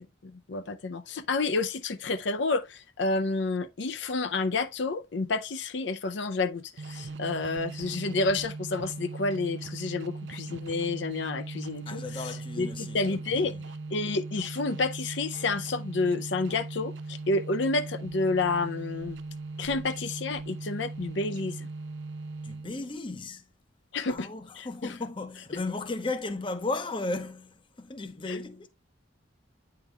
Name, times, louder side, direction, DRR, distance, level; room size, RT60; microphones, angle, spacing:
voice 1, 0.0-13.5 13.9-19.2 19.6-21.7 23.9-24.3 24.5-25.0 28.3-28.4, left 3 dB, 65° left, 0.6 m, -30 dB
sound 1, 6.8-22.9, right 3 dB, 70° right, 0.5 m, -39 dB
voice 2, 11.9-13.2 13.4-13.6 22.4-23.4 24.1-28.7, left 3 dB, 25° left, 0.7 m, -35 dB
9.2 x 3.8 x 3.3 m
head